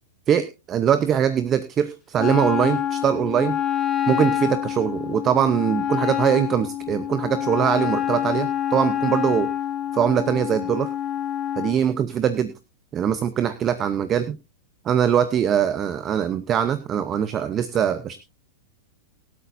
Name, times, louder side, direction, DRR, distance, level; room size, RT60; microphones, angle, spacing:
voice 1, 0.3-3.6 4.1-9.5 9.9-10.9 11.6-12.5 12.9-14.4 14.8-18.2, right 9 dB, 25° right, 12 dB, 0.7 m, -22 dB
Wind instrument woodwind instrument, 2.2-11.8, left 10 dB, 20° left, 0.8 m, -26 dB
22.5 x 8.4 x 2.6 m, 0.27 s
supercardioid pair, 155°, 0 cm